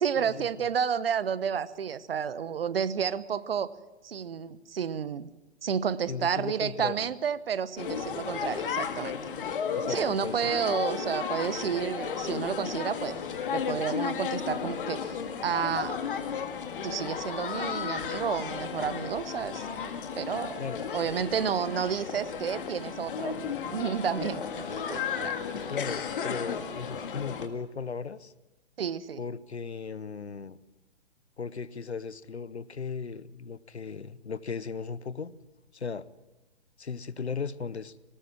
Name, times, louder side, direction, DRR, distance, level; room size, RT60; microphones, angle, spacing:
voice 1, 0.0-3.7 4.0-5.3 5.6-9.1 9.9-13.2 13.5-15.2 15.4-16.0 16.8-19.7 20.2-20.6 20.9-23.4 23.7-25.4 28.8-29.2, right 7 dB, 60° right, 17 dB, 1.0 m, -31 dB
voice 2, 6.1-7.1 9.7-10.4 20.6-20.8 25.7-28.3 29.2-30.6 31.4-35.3 35.7-36.1 36.8-38.0, left 5 dB, 80° left, 18 dB, 1.0 m, -36 dB
sound 1, 7.8-27.5, left 7 dB, 50° left, 2.0 m, -34 dB
20.0 x 18.5 x 7.5 m, 1.1 s
figure-of-eight pair, 125°, 33 cm